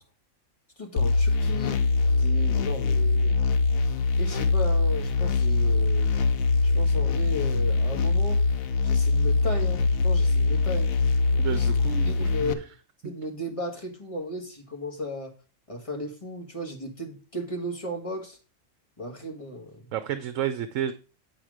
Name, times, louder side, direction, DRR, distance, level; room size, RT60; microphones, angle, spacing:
voice 1, 0.8-1.8 2.2-3.4 4.2-6.1 6.6-8.4 8.8-10.9 11.5-11.7 12.0-12.7 13.0-15.3 15.7-18.4 19.0-19.9, equal, 25° left, 2 dB, 1.8 m, -35 dB
sound 1, 1.0-12.5, left 3 dB, 90° left, 1.2 m, -23 dB
voice 2, 11.4-12.3 13.0-13.1 19.9-20.9, right 10 dB, 75° right, 11 dB, 1.0 m, -31 dB
8.5 x 5.9 x 4.9 m, 0.35 s
omnidirectional pair, 1.4 m